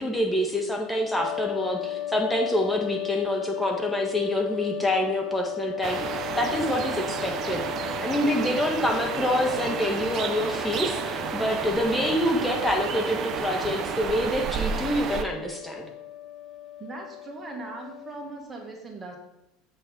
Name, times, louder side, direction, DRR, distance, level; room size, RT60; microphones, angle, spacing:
voice 1, 0.0-6.0 6.4-7.6 8.0-15.9, left 1 dB, 5° left, 0 dB, 1.6 m, -26 dB
sound 1, 1.2-18.4, left 13 dB, 50° left, 0.7 m, -36 dB
sound 2, 5.8-15.2, right 7 dB, 45° right, 0.7 m, -31 dB
voice 2, 16.8-19.2, right 3 dB, 25° right, 2 dB, 2.0 m, -39 dB
7.7 x 6.7 x 3.9 m, 0.86 s
hypercardioid pair, 75°, 0 cm